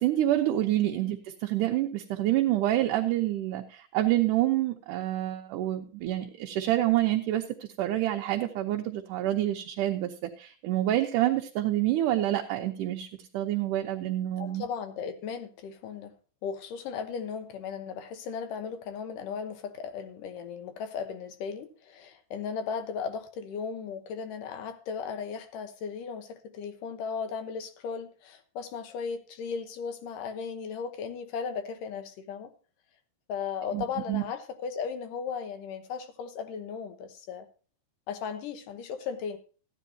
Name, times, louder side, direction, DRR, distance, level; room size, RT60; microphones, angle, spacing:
voice 1, 0.0-13.1 13.3-14.7 33.7-34.2, right 14 dB, 75° right, 2.2 m, -27 dB
voice 2, 14.4-16.1 16.4-32.5 33.3-37.5 38.1-39.4, left 6 dB, 75° left, 2.6 m, -36 dB
14.5 x 10.0 x 2.7 m
omnidirectional pair, 3.9 m